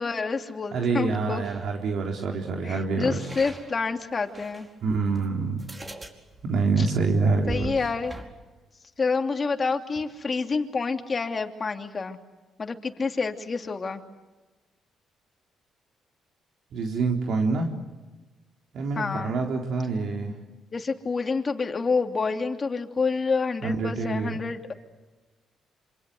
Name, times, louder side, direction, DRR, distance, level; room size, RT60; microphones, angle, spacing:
voice 1, 0.0-1.4 2.6-4.7 6.8-6.9 7.5-8.1 9.0-12.2 12.6-14.0 19.0-19.3 20.7-24.7, left 4 dB, 35° left, 5 dB, 2.9 m, -28 dB
voice 2, 0.7-3.2 4.8-5.6 6.4-7.7 16.7-17.7 18.7-20.3 23.6-24.4, right 4 dB, 70° right, 1 dB, 3.8 m, -26 dB
sound 1, 1.4-1.7 3.3-4.7 5.2-5.3 5.6-8.3, right 1 dB, 20° right, 4.8 m, -41 dB
27.5 x 27.0 x 8.0 m, 1.2 s
cardioid pair, 90°, 0 cm